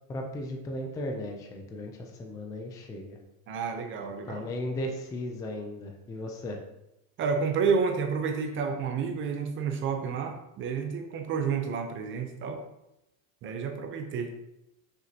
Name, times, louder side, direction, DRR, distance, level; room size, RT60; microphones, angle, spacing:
voice 1, 0.1-3.2 4.0-6.6, left 1 dB, 10° left, 2 dB, 0.4 m, -36 dB
voice 2, 3.5-4.5 7.2-12.6 13.4-14.3, right 5 dB, 30° right, 5 dB, 0.6 m, -30 dB
7.6 x 6.4 x 2.8 m, 0.89 s
supercardioid pair, 150°, 42 cm